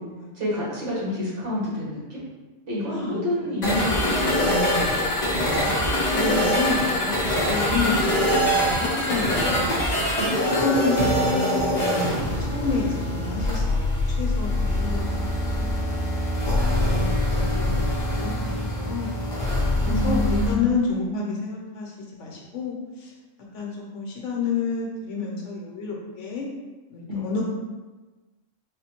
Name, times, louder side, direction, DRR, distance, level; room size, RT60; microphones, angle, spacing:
voice 1, 0.3-2.2 2.7-5.7 19.8-21.4 27.1-27.4, left 1 dB, 65° right, -8 dB, 1.6 m, -29 dB
voice 2, 2.9-3.4 6.1-10.0 10.6-15.8 16.6-19.2 19.8-23.1 23.5-26.5 26.9-27.4, left 4 dB, 70° left, -2 dB, 1.1 m, -30 dB
sound 1, 3.6-20.5, left 1 dB, 45° left, 0.7 m, -24 dB
4.2 x 2.2 x 2.9 m, 1.2 s
omnidirectional pair, 1.3 m